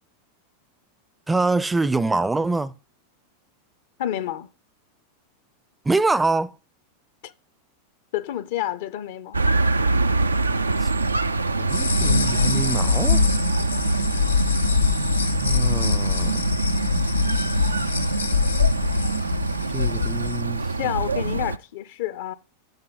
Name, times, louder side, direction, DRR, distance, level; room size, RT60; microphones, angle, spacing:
voice 1, 1.3-2.7 5.8-6.5 10.8-10.9 11.6-13.2 15.4-16.5 19.7-20.7, right 3 dB, 10° right, 0.4 m, -25 dB
voice 2, 4.0-4.5 7.2-7.3 8.1-9.4 20.8-22.3, left 12 dB, 60° left, 0.5 m, -29 dB
sound 1, 9.3-21.6, right 3 dB, 90° right, 0.3 m, -25 dB
sound 2, 11.7-20.3, left 4 dB, 85° left, 0.8 m, -23 dB
7.9 x 5.7 x 3.8 m
figure-of-eight pair, 90°, 0 cm